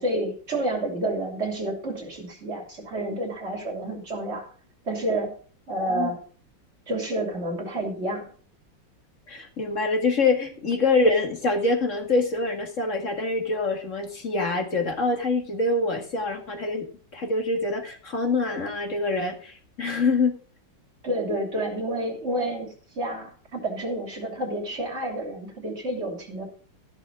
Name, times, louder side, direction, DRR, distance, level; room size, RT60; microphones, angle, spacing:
voice 1, 0.0-4.5 4.9-5.3 5.7-6.2 6.9-8.3 21.0-26.5, right 1 dB, 35° right, 1 dB, 3.3 m, -29 dB
voice 2, 9.3-16.9 17.1-20.3, left 3 dB, 40° left, 3 dB, 2.2 m, -25 dB
14.5 x 6.3 x 5.0 m, 0.43 s
omnidirectional pair, 2.1 m